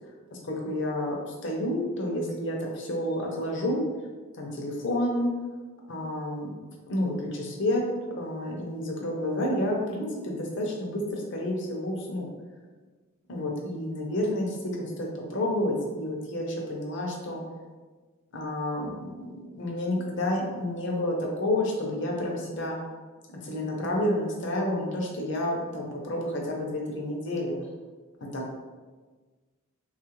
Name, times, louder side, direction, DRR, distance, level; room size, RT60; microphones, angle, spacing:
voice 1, 0.3-1.2 1.4-3.8 4.3-5.3 5.9-6.5 6.9-7.8 8.2-12.3 13.3-17.4 18.3-22.8 23.3-27.5 28.2-28.6, left 1 dB, 55° left, -1 dB, 0.6 m, -30 dB
3.1 x 2.3 x 3.0 m, 1.3 s
head